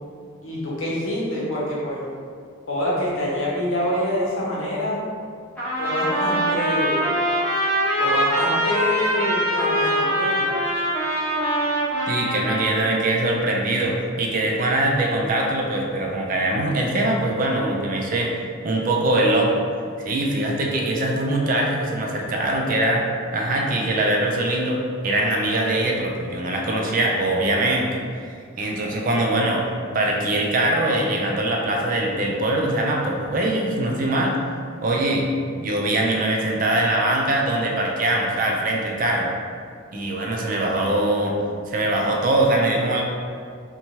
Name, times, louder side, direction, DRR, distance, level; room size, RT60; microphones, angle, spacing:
voice 1, 0.4-2.0 2.7-5.1 5.8-7.0 8.0-10.5, left 1 dB, 85° left, -6 dB, 0.8 m, -26 dB
Trumpet, 5.6-13.0, right 1 dB, 10° left, 0.8 m, -23 dB
voice 2, 12.1-18.3 18.6-19.6 20.1-23.0 23.3-28.0 28.6-29.6 29.9-34.4 34.8-35.3 35.6-39.3 39.9-41.4 41.7-43.0, right 1 dB, 40° right, -1 dB, 0.4 m, -22 dB
3.0 x 2.2 x 2.7 m, 2.1 s
head